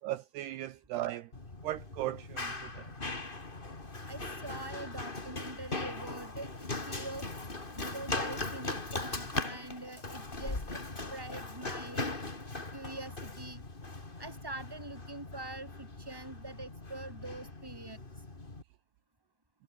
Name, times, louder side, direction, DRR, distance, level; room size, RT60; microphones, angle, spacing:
voice 1, 0.0-1.3 1.6-3.1, right 15 dB, 80° right, 2.4 m, -38 dB
Run, 1.3-18.6, left 2 dB, 30° left, 0.9 m, -40 dB
voice 2, 4.1-7.3 7.7-10.6 11.1-13.6 14.2-18.0, right 2 dB, 5° right, 4.5 m, -44 dB
omnidirectional pair, 5.9 m